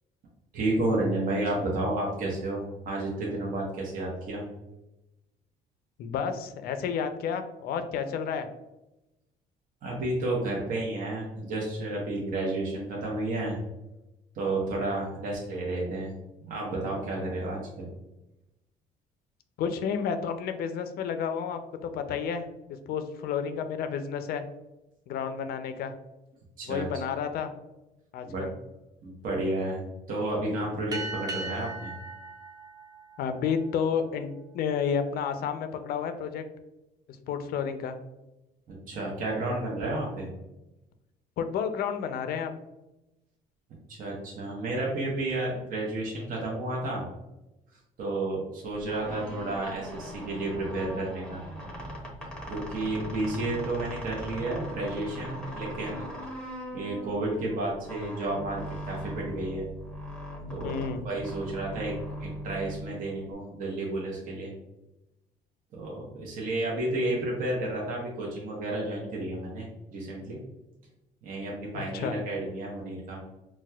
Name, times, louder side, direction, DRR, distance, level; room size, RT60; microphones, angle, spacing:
voice 1, 0.5-4.4 9.8-13.6 14.3-16.1 16.4-17.9 26.6-26.9 28.3-28.4 29.0-29.8 30.1-31.9 38.7-40.3 43.9-47.0 48.0-51.4 52.5-56.1 56.7-58.6 58.9-59.7 60.5-60.7 61.0-64.5 65.7-70.4 71.2-73.2, right 2 dB, 55° right, -3 dB, 0.8 m, -31 dB
voice 2, 6.0-8.5 19.6-22.5 22.9-24.4 25.1-25.9 26.7-27.5 28.1-28.5 33.2-36.4 37.3-38.0 41.4-42.5 60.6-61.0 71.7-72.2, left 7 dB, 65° left, 8 dB, 0.4 m, -31 dB
sound 1, 30.9-33.9, right 2 dB, 20° right, 0.4 m, -39 dB
sound 2, 48.8-63.3, equal, 5° left, 0.8 m, -40 dB
4.1 x 2.2 x 2.2 m, 0.97 s
cardioid pair, 110°, 17 cm